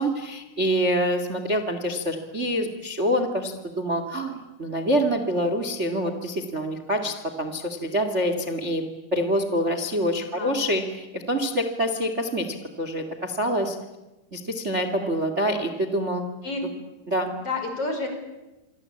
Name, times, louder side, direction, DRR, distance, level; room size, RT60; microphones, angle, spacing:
voice 1, 0.0-8.8 9.1-13.8 14.3-16.2 17.1-17.3, equal, 45° right, 9 dB, 0.9 m, -26 dB
voice 2, 10.2-10.6 15.5-15.6 16.4-16.6 17.4-18.1, left 3 dB, 30° left, 5 dB, 5.5 m, -30 dB
27.5 x 23.5 x 8.7 m, 1.0 s
omnidirectional pair, 5.2 m